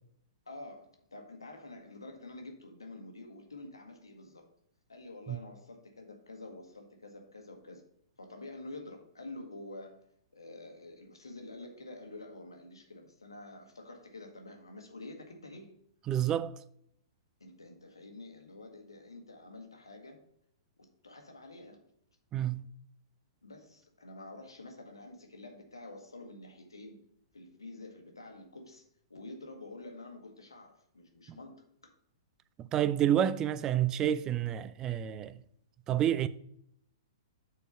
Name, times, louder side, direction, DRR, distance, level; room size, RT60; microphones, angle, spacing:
voice 1, 0.5-4.5 4.9-7.9 8.2-10.0 10.3-15.7 17.4-20.2 20.8-21.8 23.4-27.0 27.3-31.9, left 2 dB, 75° left, 1.3 m, -48 dB
voice 2, 16.1-16.6 22.3-22.6 31.3-31.4 32.6-35.4 35.9-36.3, right 10 dB, 20° right, 0.3 m, -29 dB
6.8 x 4.5 x 5.4 m
figure-of-eight pair, 110°, 2 cm